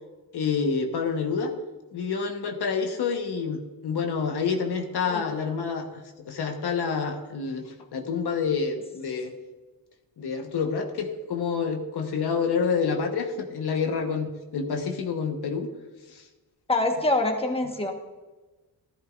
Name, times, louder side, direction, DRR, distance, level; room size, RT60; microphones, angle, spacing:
voice 1, 0.3-1.5 1.9-9.3 10.2-15.7 16.1-16.2, left 5 dB, 80° left, 3 dB, 1.3 m, -28 dB
voice 2, 16.7-17.9, left 2 dB, 15° left, 3 dB, 1.4 m, -25 dB
14.0 x 11.5 x 2.6 m, 1.2 s
cardioid pair, 95°, 39 cm